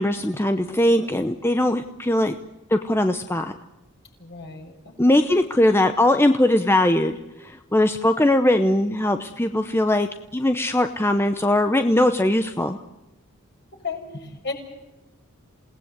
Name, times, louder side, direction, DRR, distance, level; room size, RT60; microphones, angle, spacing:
voice 1, 0.0-2.3 2.7-3.5 5.0-7.1 7.4-12.8, left 1 dB, 10° left, 7 dB, 0.8 m, -20 dB
voice 2, 4.2-5.2 13.7-14.5, left 4 dB, 50° left, 2 dB, 6.4 m, -34 dB
28.5 x 18.5 x 8.2 m, 1.0 s
head